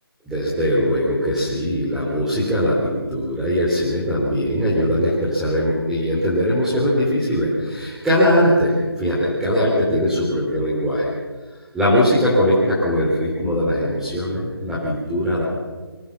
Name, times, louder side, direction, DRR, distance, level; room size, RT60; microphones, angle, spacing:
voice 1, 0.3-11.1 11.7-15.4, equal, 5° right, -8 dB, 3.5 m, -20 dB
24.5 x 19.0 x 7.2 m, 1.3 s
figure-of-eight pair, 165°, 13 cm